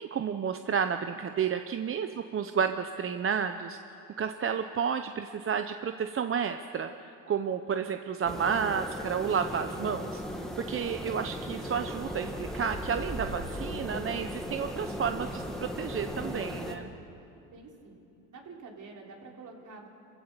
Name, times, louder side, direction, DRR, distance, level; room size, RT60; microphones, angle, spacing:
voice 1, 0.0-3.8 4.2-16.9, right 7 dB, 35° right, 8 dB, 0.8 m, -31 dB
sound 1, 8.2-16.8, equal, ahead, 2.1 m, -37 dB
voice 2, 17.5-18.0 18.3-19.9, right 4 dB, 55° right, 0 dB, 3.7 m, -47 dB
27.5 x 15.0 x 6.9 m, 2.7 s
cardioid pair, 95°, 36 cm